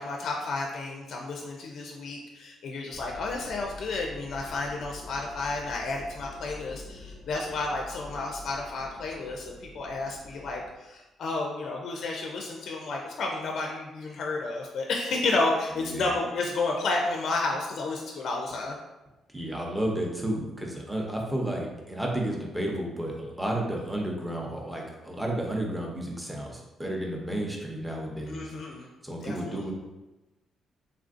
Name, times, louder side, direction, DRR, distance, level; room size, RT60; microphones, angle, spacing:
voice 1, 0.0-18.8 28.3-28.9 29.2-29.6, left 3 dB, 65° left, 0 dB, 0.4 m, -31 dB
sound 1, 2.9-10.7, left 2 dB, 50° right, 0.6 m, -46 dB
voice 2, 15.8-16.1 19.3-28.5 29.0-29.7, right 1 dB, 10° right, -1 dB, 0.7 m, -32 dB
3.4 x 2.4 x 2.5 m, 1.1 s
cardioid pair, 90°, 0 cm